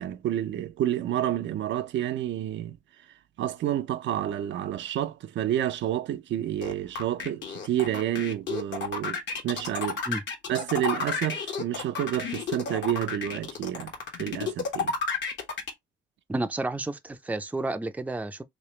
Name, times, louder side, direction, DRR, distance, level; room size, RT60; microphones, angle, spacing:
voice 1, 0.0-2.8 3.4-9.2 9.4-10.0 10.5-13.9 14.2-14.9, right 12 dB, 65° right, 0.5 m, -29 dB
sound 1, 6.6-15.7, left 5 dB, 65° left, 1.2 m, -31 dB
voice 2, 16.3-18.4, right 2 dB, 5° right, 0.4 m, -31 dB
3.2 x 3.0 x 3.1 m
cardioid pair, 90°, 20 cm